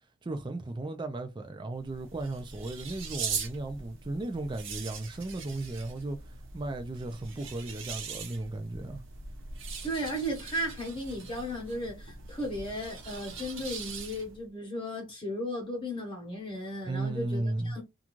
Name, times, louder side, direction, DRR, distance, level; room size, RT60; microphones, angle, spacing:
voice 1, 0.2-6.2 6.5-9.0 16.8-17.8, right 2 dB, 20° right, 0.3 m, -35 dB
sound 1, 1.7-14.5, right 5 dB, 55° right, 0.7 m, -41 dB
voice 2, 9.8-17.8, equal, 20° left, 0.9 m, -35 dB
2.5 x 2.3 x 2.9 m
head